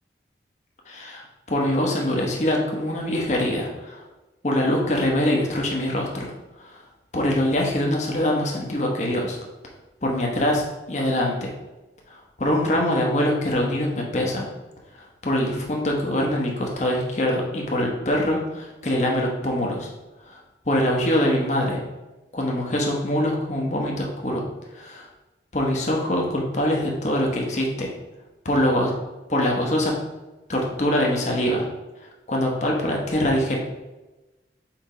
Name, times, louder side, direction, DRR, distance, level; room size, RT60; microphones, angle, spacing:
voice 1, 0.9-4.0 4.4-6.3 6.6-6.8 7.1-9.4 10.0-11.5 12.1-14.5 14.9-19.9 20.3-20.4 20.7-21.8 22.3-24.4 24.8-25.1 25.5-27.9 28.4-28.9 29.3-29.9 30.5-31.7 32.3-33.6, left 1 dB, 40° left, -1 dB, 1.0 m, -24 dB
4.6 x 4.4 x 5.0 m, 1.1 s
head